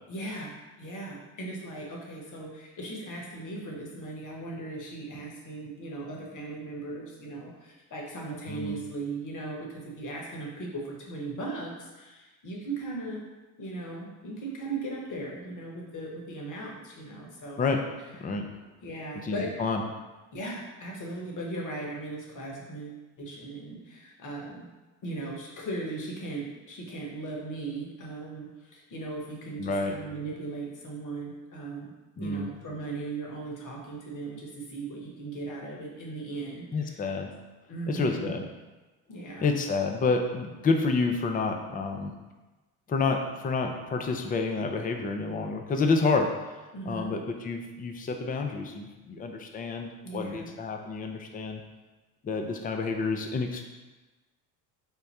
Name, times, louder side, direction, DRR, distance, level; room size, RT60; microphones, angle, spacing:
voice 1, 0.1-13.2 13.6-17.6 18.2-18.3 18.8-19.9 20.3-24.7 25.0-37.2 37.7-38.3 39.1-39.5 46.7-47.2 50.0-50.5, right 2 dB, 40° left, -1 dB, 1.2 m, -38 dB
voice 2, 19.2-19.8 29.6-29.9 32.2-32.5 36.7-37.3 37.9-38.4 39.4-42.1 42.9-46.3 46.9-51.6 52.2-53.6, left 4 dB, 20° left, 4 dB, 0.4 m, -29 dB
3.6 x 2.1 x 4.1 m, 1.2 s
hypercardioid pair, 65°, 46 cm